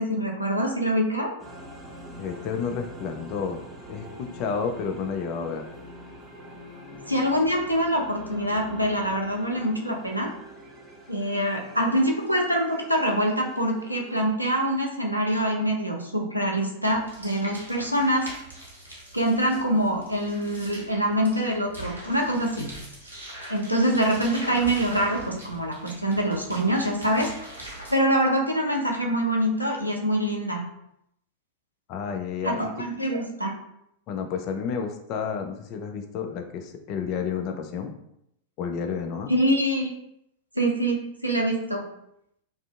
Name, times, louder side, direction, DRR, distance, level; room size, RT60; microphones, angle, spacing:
voice 1, 0.0-1.3 7.1-10.3 11.1-18.3 19.1-22.7 23.5-27.3 27.9-30.7 32.4-33.5 39.3-39.9 40.6-41.8, equal, 90° right, 0 dB, 0.4 m, -25 dB
sound 1, 1.4-14.2, equal, 15° right, 0.6 m, -44 dB
voice 2, 2.2-3.6 3.9-5.6 31.9-32.7 34.1-37.9 38.6-39.3, left 6 dB, 40° left, 5 dB, 0.3 m, -31 dB
sound 2, 16.9-28.0, right 1 dB, 90° left, 0.8 m, -42 dB
2.4 x 2.4 x 2.4 m, 0.77 s
figure-of-eight pair, 90°, 0 cm